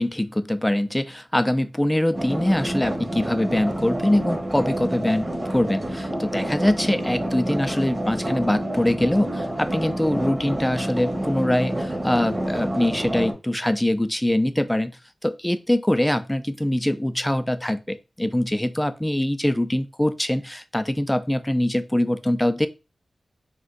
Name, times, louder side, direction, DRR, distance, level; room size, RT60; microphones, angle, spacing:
voice 1, 0.0-14.9 15.2-22.7, left 1 dB, 10° left, 0.3 m, -23 dB
sound 1, 2.1-13.3, right 1 dB, 35° right, 0.8 m, -28 dB
2.5 x 2.1 x 3.7 m
cardioid pair, 50°, 0 cm